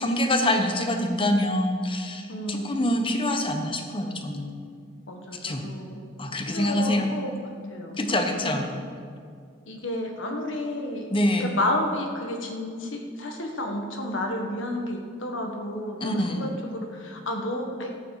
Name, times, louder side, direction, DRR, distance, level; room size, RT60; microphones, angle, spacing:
voice 1, 0.0-4.5 5.4-5.6 6.2-7.1 8.0-8.7 11.1-11.5 16.0-16.5, left 1 dB, 25° left, 4 dB, 1.1 m, -25 dB
voice 2, 2.3-2.8 5.1-6.0 6.5-7.3 7.6-8.0 8.3-8.6 9.7-11.1 11.4-18.0, left 1 dB, 70° left, 2 dB, 1.5 m, -31 dB
14.0 x 9.2 x 4.9 m, 2.2 s
head